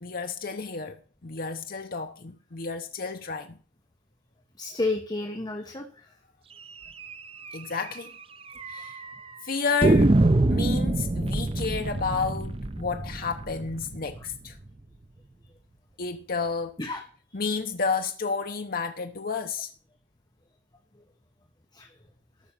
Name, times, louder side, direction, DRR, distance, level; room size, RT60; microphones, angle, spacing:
voice 1, 0.0-3.6 7.5-8.1 8.7-9.0 9.4-10.2 10.5-14.6 16.0-16.7 17.3-19.7, left 4 dB, 50° left, 1.0 m, -31 dB
voice 2, 4.6-6.1 16.8-17.0 17.3-17.4 21.7-21.9, left 2 dB, 20° left, 1.3 m, -31 dB
sound 1, 7.0-7.1 7.5-7.6 7.8-7.9 8.6-9.1 9.8-14.6, right 2 dB, 30° right, 0.6 m, -25 dB
13.5 x 6.4 x 7.2 m
head